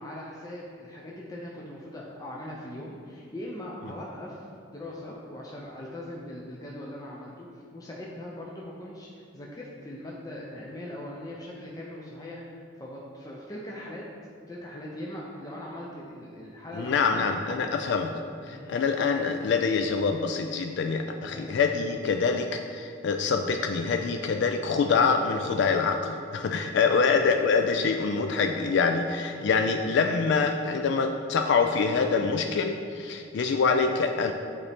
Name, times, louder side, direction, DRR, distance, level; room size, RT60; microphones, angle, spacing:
voice 1, 0.0-14.1 14.5-17.8 18.5-18.8 21.1-21.5 26.9-27.1 29.4-29.5, left 1 dB, 20° left, -4 dB, 0.6 m, -40 dB
voice 2, 16.8-18.1 18.5-34.3, left 5 dB, 60° left, 5 dB, 0.3 m, -25 dB
9.6 x 4.2 x 3.5 m, 2.5 s
head